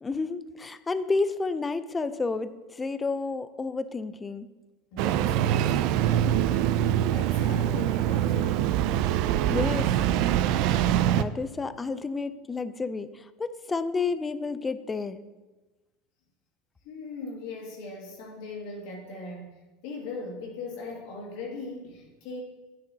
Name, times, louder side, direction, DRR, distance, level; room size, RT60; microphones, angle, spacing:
voice 1, 0.0-4.5 9.5-15.2, left 4 dB, 20° left, 13 dB, 0.4 m, -31 dB
voice 2, 4.9-8.7 16.8-22.4, left 2 dB, 70° left, -1 dB, 1.9 m, -39 dB
Engine starting, 5.0-11.2, right 11 dB, 60° right, 0.3 m, -24 dB
9.7 x 6.6 x 2.7 m, 1.2 s
supercardioid pair, 105°, 0 cm